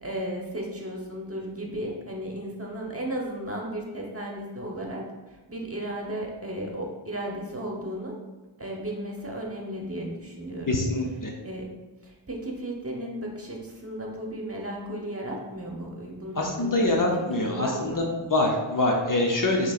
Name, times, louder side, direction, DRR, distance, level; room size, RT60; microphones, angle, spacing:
voice 1, 0.0-8.2 8.6-10.8 11.4-11.7 12.0-18.1, right 1 dB, 30° right, -1 dB, 1.1 m, -34 dB
voice 2, 10.7-11.3 16.4-18.0 18.3-19.7, left 2 dB, 40° left, 0 dB, 0.8 m, -24 dB
6.4 x 3.1 x 2.5 m, 1.2 s
cardioid pair, 40°, 50 cm